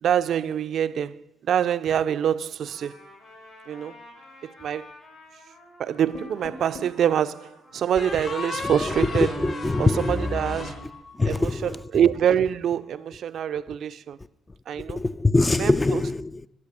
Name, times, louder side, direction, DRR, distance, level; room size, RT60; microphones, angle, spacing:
voice 1, 0.0-3.0 3.7-4.0 4.4-4.9 5.8-9.3 9.8-10.8 11.3-14.2 14.7-15.0 15.6-16.0, right 9 dB, 65° right, 0.3 m, -25 dB
Trumpet, 2.6-9.7, left 2 dB, 80° left, 5.1 m, -51 dB
sound 1, 6.1-7.0 8.0-11.4, left 2 dB, 55° left, 2.2 m, -33 dB
voice 2, 8.6-10.3 11.2-11.8 14.8-16.5, left 2 dB, 20° left, 0.3 m, -24 dB
10.5 x 8.2 x 6.6 m
cardioid pair, 90°, 0 cm